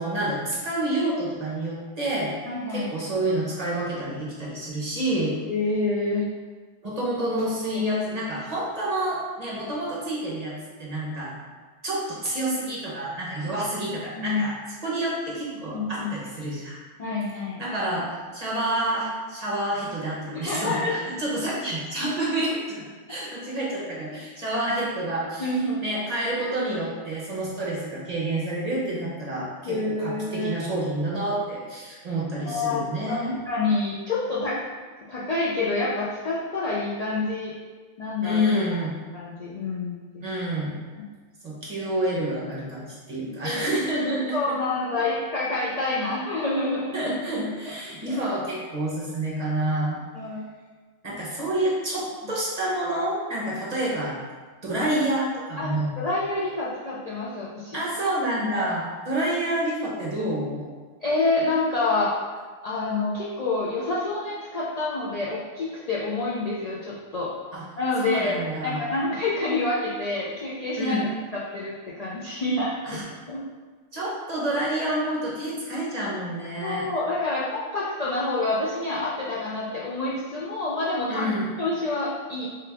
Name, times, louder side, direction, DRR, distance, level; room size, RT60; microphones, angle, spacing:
voice 1, 0.0-2.3 2.7-5.3 6.8-11.4 11.8-14.5 14.8-16.8 17.6-18.1 18.3-22.8 23.1-25.5 25.8-33.3 38.2-38.9 40.2-40.8 41.4-44.5 46.9-50.0 51.0-54.1 54.6-56.0 57.7-60.7 67.5-67.6 68.0-68.8 70.8-71.1 72.8-73.0 73.9-76.9 81.1-81.5, right 1 dB, 35° right, -5 dB, 0.8 m, -28 dB
voice 2, 2.5-2.9 5.5-6.2 7.7-7.8 14.2-14.6 15.7-16.1 17.0-17.6 20.3-21.0 25.4-25.8 29.6-30.5 32.5-33.2 33.5-34.6 35.1-37.5 38.0-38.7 39.1-40.2 41.8-41.9 43.4-43.6 44.3-46.9 48.1-48.2 50.1-50.4 55.6-57.8 58.6-58.7 61.0-62.2 62.6-67.3 67.8-71.0 71.3-73.0 73.3-73.4 76.6-81.3 81.6-82.5, left 2 dB, 75° left, -6 dB, 0.3 m, -27 dB
3.4 x 3.3 x 3.4 m, 1.4 s
omnidirectional pair, 1.3 m